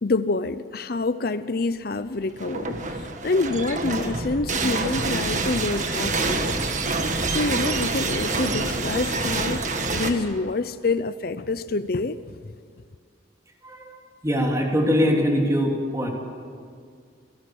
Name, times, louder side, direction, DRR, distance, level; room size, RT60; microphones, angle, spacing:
voice 1, 0.0-6.6 7.3-9.6 9.9-12.2, left 3 dB, 55° left, 13 dB, 0.6 m, -27 dB
sound 1, 2.3-10.1, right 3 dB, 40° right, 1.7 m, -26 dB
voice 2, 13.6-14.0 14.2-16.1, equal, 15° right, 0 dB, 3.3 m, -22 dB
27.0 x 17.5 x 7.9 m, 2.1 s
head